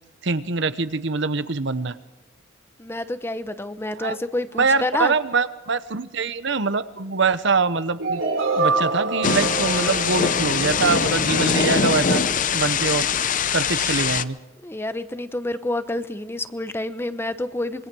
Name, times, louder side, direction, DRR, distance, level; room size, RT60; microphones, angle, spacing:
voice 1, 0.2-2.0 3.9-4.2 4.6-8.2 8.6-12.2 12.5-13.1 13.5-14.4, right 4 dB, 60° right, 13 dB, 1.0 m, -23 dB
voice 2, 2.8-5.1 14.6-17.9, left 1 dB, 10° left, 11 dB, 0.9 m, -28 dB
sound 1, 8.0-11.9, right 3 dB, 80° right, 4.9 m, -26 dB
Thunder / Rain, 9.2-14.2, left 6 dB, 40° left, 0.7 m, -22 dB
26.0 x 23.5 x 6.3 m, 1.0 s
head